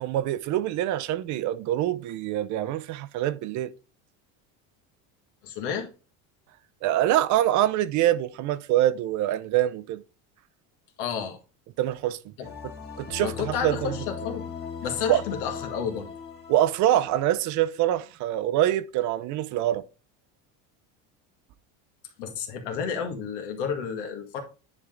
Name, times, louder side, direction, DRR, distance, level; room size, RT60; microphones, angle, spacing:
voice 1, 0.0-3.7 6.8-10.0 11.8-12.2 13.0-14.0 15.1-15.2 16.5-19.8, right 13 dB, 55° right, 0.6 m, -25 dB
voice 2, 5.4-5.9 11.0-11.4 12.4-12.5 13.2-14.5 14.8-16.1 22.2-24.4, left 7 dB, 90° left, 2.0 m, -31 dB
sound 1, 12.4-17.9, left 6 dB, 25° left, 1.6 m, -39 dB
9.8 x 3.6 x 3.8 m
cardioid pair, 140°, 36 cm